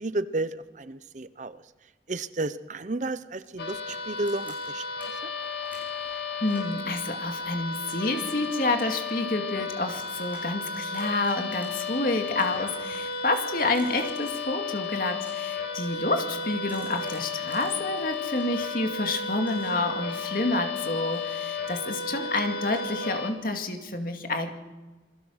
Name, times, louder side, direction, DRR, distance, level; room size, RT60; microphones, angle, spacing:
voice 1, 0.0-1.6 2.1-5.1, right 2 dB, 40° right, 14 dB, 0.7 m, -32 dB
sound 1, 3.4-5.1 5.4-6.7 7.2-9.3 9.6-10.5 10.7-11.6 11.9-14.2 14.9-15.8 16.1-18.5 18.8-21.7 22.0-22.8, right 2 dB, 10° right, 6.1 m, -54 dB
sound 2, 3.6-23.3, left 5 dB, 70° left, 2.6 m, -33 dB
voice 2, 6.1-24.5, left 2 dB, 50° left, 5 dB, 2.3 m, -29 dB
27.5 x 21.0 x 6.4 m, 1.2 s
head